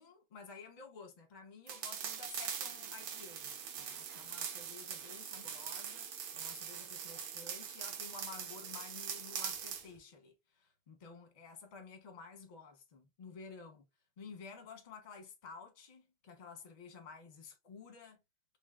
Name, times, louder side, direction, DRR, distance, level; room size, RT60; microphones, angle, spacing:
voice 1, 0.0-6.1 6.3-13.9 14.2-18.2, left 5 dB, 30° left, 0.9 m, -52 dB
sound 1, 1.7-9.9, right 8 dB, 70° right, 1.5 m, -42 dB
3.8 x 3.4 x 2.4 m
omnidirectional pair, 2.4 m